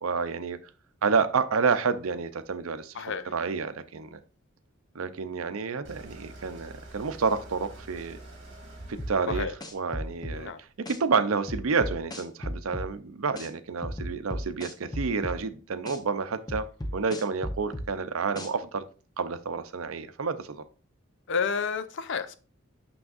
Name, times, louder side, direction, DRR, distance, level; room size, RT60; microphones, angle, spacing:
voice 1, 0.0-0.7 1.0-3.0 3.3-4.2 4.9-8.2 8.9-9.5 9.7-10.5 10.8-16.7 16.9-18.8 19.2-20.6, right 5 dB, 90° right, 12 dB, 0.6 m, -29 dB
voice 2, 2.9-3.3 9.3-9.5 10.3-10.6 21.3-22.4, left 6 dB, 60° left, 12 dB, 0.6 m, -30 dB
sound 1, 5.8-10.8, right 1 dB, 60° right, 1.5 m, -47 dB
sound 2, 9.0-10.4 10.9-11.0 11.5-12.9 13.4-13.5 13.8-15.4 15.9-16.0 16.5-17.9 18.4-18.5, equal, 20° left, 0.8 m, -34 dB
6.2 x 6.1 x 2.5 m, 0.36 s
head